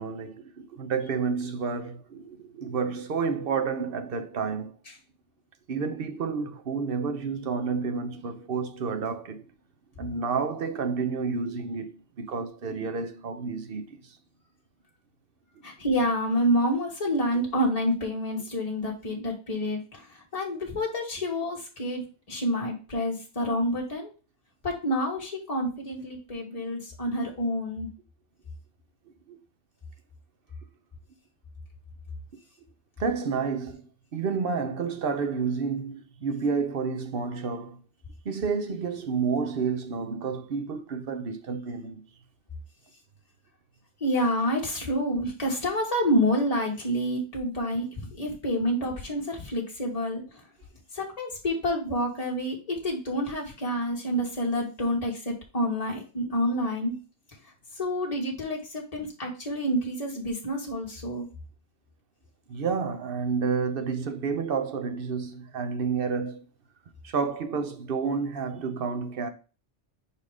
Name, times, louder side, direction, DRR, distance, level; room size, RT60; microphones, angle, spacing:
voice 1, 0.0-4.7 5.7-9.4 10.0-14.2 29.3-29.4 33.0-33.8 34.1-37.8 38.2-42.0 62.5-66.4 67.0-69.3, right 5 dB, 55° right, 1.0 m, -30 dB
voice 2, 15.6-20.0 20.3-24.1 24.6-27.9 44.0-50.2 50.9-56.9 57.8-61.3, equal, 30° left, 1.8 m, -28 dB
4.9 x 4.2 x 4.9 m
omnidirectional pair, 1.2 m